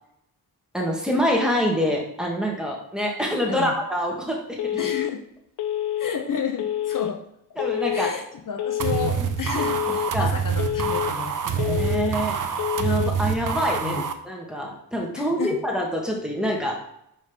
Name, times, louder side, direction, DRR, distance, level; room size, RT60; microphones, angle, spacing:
voice 1, 0.7-4.8 7.6-8.1 10.1-10.3 11.6-12.4 12.8-16.8, equal, ahead, -1 dB, 1.4 m, -26 dB
Telephone, 4.6-5.1 5.6-6.1 6.6-7.1 7.6-8.1 8.6-9.1 9.6-10.1 10.6-11.1 11.6-12.1 12.6-13.1, left 12 dB, 80° left, 0.5 m, -27 dB
voice 2, 4.8-5.2 6.0-7.2 7.9-11.5 13.8-14.1 15.1-15.6, left 6 dB, 55° left, 4 dB, 0.8 m, -31 dB
sound 1, 8.8-14.1, right 7 dB, 50° right, 0.7 m, -26 dB
5.3 x 5.2 x 5.3 m, 0.76 s
wide cardioid pair, 145°, 39 cm